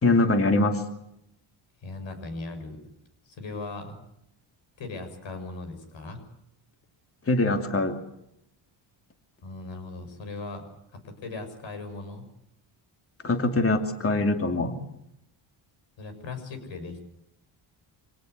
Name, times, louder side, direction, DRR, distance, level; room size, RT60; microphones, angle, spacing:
voice 1, 0.0-0.8 7.3-8.0 13.2-14.8, left 2 dB, 30° left, 6 dB, 2.7 m, -23 dB
voice 2, 1.8-2.8 3.2-3.9 4.8-6.2 9.4-10.6 10.9-12.2 16.0-17.0, left 3 dB, 65° left, 8 dB, 6.8 m, -38 dB
26.0 x 18.5 x 8.1 m, 0.78 s
cardioid pair, 100°, 48 cm